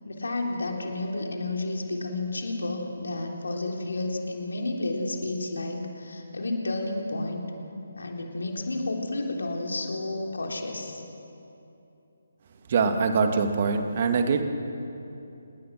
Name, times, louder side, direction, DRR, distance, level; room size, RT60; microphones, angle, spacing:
voice 1, 0.1-7.4 8.0-11.0, left 2 dB, 60° left, 1 dB, 3.5 m, -31 dB
voice 2, 12.7-14.4, right 5 dB, 35° right, 6 dB, 2.1 m, -23 dB
28.0 x 21.0 x 6.2 m, 2.9 s
figure-of-eight pair, 145°, 0 cm